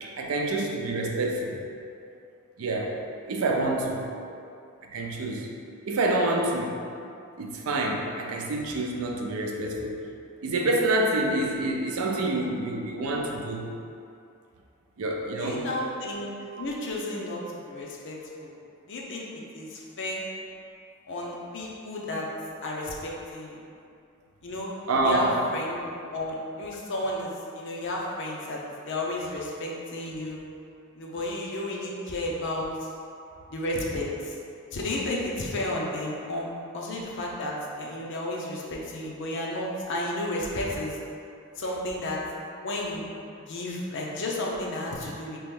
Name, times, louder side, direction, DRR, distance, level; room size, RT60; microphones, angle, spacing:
voice 1, 0.0-1.6 2.6-3.0 3.3-4.1 4.9-5.5 5.8-6.8 7.4-10.0 10.4-13.7 15.0-15.7 24.9-25.4 33.3-33.4, right 2 dB, 85° right, 0 dB, 0.5 m, -27 dB
voice 2, 15.4-16.3 16.6-18.5 18.9-19.3 19.5-20.2 21.1-22.3 22.6-23.6 24.4-24.7 25.0-25.8 26.1-30.4 31.0-32.7 33.5-34.3 34.7-41.0 41.6-42.2 42.6-43.0 43.5-45.4, left 1 dB, 60° left, -3 dB, 0.6 m, -32 dB
3.0 x 3.0 x 3.6 m, 2.5 s
head